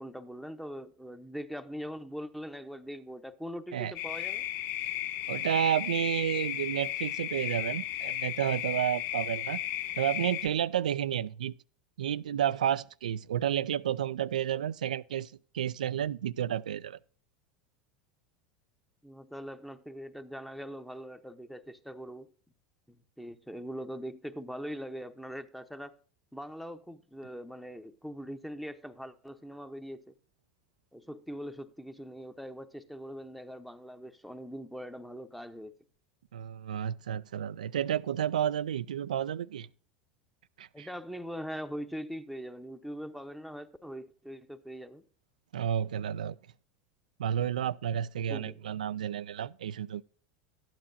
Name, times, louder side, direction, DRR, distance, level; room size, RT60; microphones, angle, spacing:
voice 1, 0.0-4.4 19.0-22.3 22.9-25.9 26.3-30.1 30.9-35.7 40.7-45.0 48.2-48.6, equal, ahead, 0.9 m, -42 dB
sound 1, 4.0-10.5, left 12 dB, 55° left, 0.5 m, -35 dB
voice 2, 5.3-9.6 10.0-11.5 12.0-17.0 36.3-39.7 40.6-40.9 45.5-46.4 47.2-50.0, right 10 dB, 90° right, 0.3 m, -31 dB
12.5 x 8.9 x 2.7 m
hypercardioid pair, 95°, 4 cm